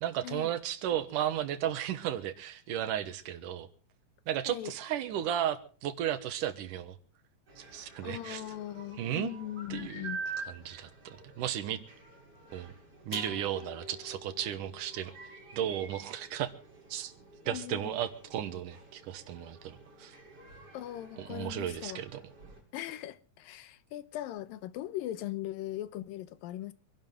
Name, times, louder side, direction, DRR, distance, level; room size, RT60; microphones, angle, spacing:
voice 1, 0.0-3.7 4.3-7.0 7.6-8.4 9.0-9.3 9.7-10.1 10.5-11.8 12.5-12.7 13.1-15.1 15.5-16.5 16.9-17.1 17.5-20.1 21.2-22.2, right 11 dB, 70° right, 2.6 m, -34 dB
sound 1, 7.5-22.6, right 4 dB, 45° right, 6.6 m, -48 dB
voice 2, 8.0-10.2 17.5-18.0 20.7-22.0 22.7-26.7, left 13 dB, 80° left, 2.6 m, -39 dB
sound 2, 13.1-16.8, left 4 dB, 45° left, 2.8 m, -49 dB
26.0 x 11.5 x 3.7 m
omnidirectional pair, 4.0 m